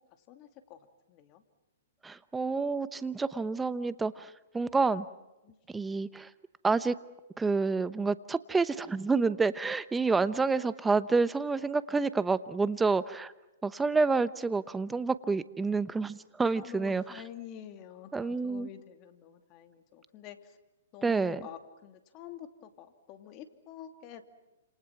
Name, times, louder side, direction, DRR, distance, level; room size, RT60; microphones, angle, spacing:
voice 1, 0.3-1.4 5.4-5.6 16.5-20.6 20.9-24.2, left 10 dB, 35° left, 7 dB, 2.6 m, -48 dB
voice 2, 2.0-5.1 5.7-6.3 6.6-6.9 7.4-13.3 13.6-17.0 18.1-18.7 21.0-21.4, right 4 dB, 10° right, 14 dB, 0.9 m, -28 dB
30.0 x 27.5 x 6.0 m, 1.0 s
hypercardioid pair, 140°, 0 cm